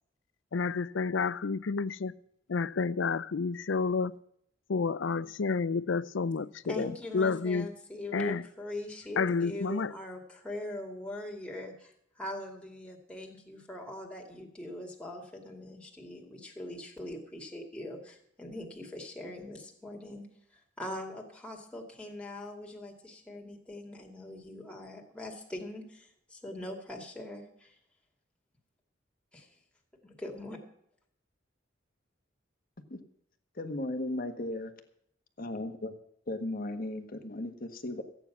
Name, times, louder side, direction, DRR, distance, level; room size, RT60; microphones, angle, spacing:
voice 1, 0.5-2.1 2.5-4.1 4.7-7.7 8.1-8.4 9.2-9.9, left 4 dB, 80° left, 0.5 m, -30 dB
voice 2, 6.6-20.2 20.5-27.7 29.3-29.5 30.0-30.6, left 1 dB, 5° left, 2.4 m, -42 dB
voice 3, 33.6-34.7 35.4-35.9 36.3-38.0, left 1 dB, 50° left, 1.5 m, -36 dB
14.5 x 9.0 x 6.0 m
head